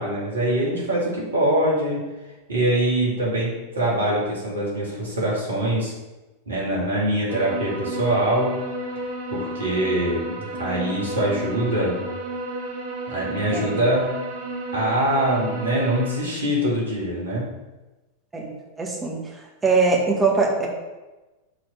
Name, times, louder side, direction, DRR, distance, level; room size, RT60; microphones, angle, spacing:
voice 1, 0.0-2.0 2.5-5.9 6.5-8.6 9.3-12.0 13.1-14.1 14.7-17.5, right 1 dB, 75° right, -5 dB, 2.4 m, -23 dB
sound 1, 7.3-16.2, right 1 dB, 55° right, 1.5 m, -32 dB
voice 2, 18.3-19.2 19.6-20.7, right 4 dB, 15° right, -1 dB, 1.6 m, -22 dB
6.2 x 4.2 x 5.1 m, 1.1 s
figure-of-eight pair, 90°, 0 cm